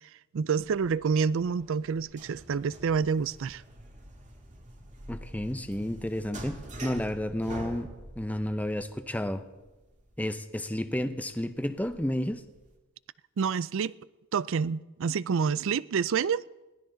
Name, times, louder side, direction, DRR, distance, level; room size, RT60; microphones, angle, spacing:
voice 1, 0.3-3.6 13.4-13.9 14.3-16.4, right 6 dB, 65° right, 0.4 m, -28 dB
sound 1, 0.6-12.7, right 1 dB, 35° right, 1.8 m, -47 dB
voice 2, 5.1-7.9 8.2-9.4 10.2-12.4, left 1 dB, 5° left, 0.7 m, -31 dB
21.0 x 16.0 x 3.9 m
head